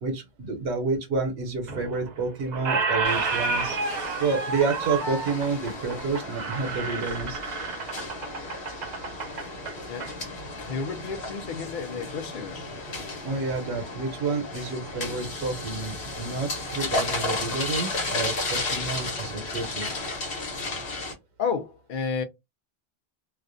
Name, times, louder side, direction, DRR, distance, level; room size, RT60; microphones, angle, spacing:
voice 1, 0.0-3.8 4.2-7.4 13.2-19.9, right 4 dB, 90° right, 0.9 m, -29 dB
Squeak, 1.7-2.2 2.5-10.1, right 4 dB, 55° right, 0.6 m, -30 dB
sound 1, 3.0-21.1, left 2 dB, 80° left, 1.1 m, -34 dB
voice 2, 10.6-12.6 21.4-22.2, left 5 dB, 60° left, 0.6 m, -31 dB
2.4 x 2.1 x 2.4 m
omnidirectional pair, 1.1 m